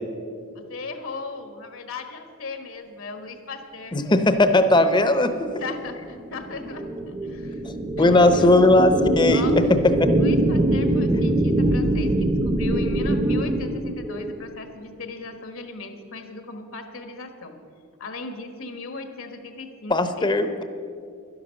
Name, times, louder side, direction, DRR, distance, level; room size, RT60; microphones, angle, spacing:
voice 1, 0.5-4.0 5.6-7.6 8.0-8.6 9.3-9.5 10.1-17.6 18.0-20.4, left 3 dB, 70° left, 7 dB, 1.4 m, -37 dB
voice 2, 3.9-5.3 8.0-10.1 19.9-20.6, left 2 dB, 20° left, 9 dB, 0.7 m, -18 dB
sound 1, 5.6-14.4, right 1 dB, 25° right, 0.8 m, -23 dB
12.0 x 11.0 x 6.5 m, 2.4 s
head